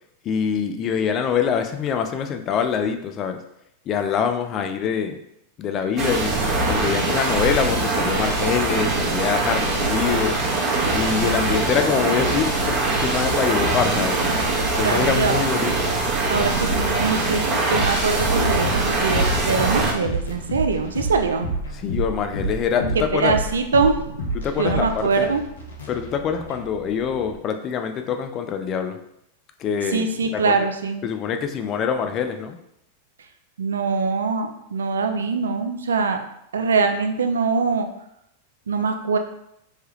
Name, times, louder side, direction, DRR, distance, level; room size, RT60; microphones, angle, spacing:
voice 1, 0.2-3.4 3.9-5.2 5.6-10.4 10.9-14.2 14.8-15.7 21.8-23.3 24.3-25.3 25.9-29.0 29.6-30.6 31.0-32.6, left 7 dB, 35° left, 7 dB, 0.4 m, -24 dB
sound 1, 6.0-19.9, right 2 dB, 40° right, 0.9 m, -22 dB
voice 2, 14.7-15.4 16.3-21.5 22.8-25.4 29.8-31.0 33.6-36.2 36.5-37.9 38.7-39.2, right 4 dB, 85° right, 6 dB, 0.3 m, -23 dB
sound 2, 17.7-27.3, right 1 dB, 85° left, 0.7 m, -30 dB
3.2 x 2.2 x 3.0 m, 0.77 s
hypercardioid pair, 105°, 0 cm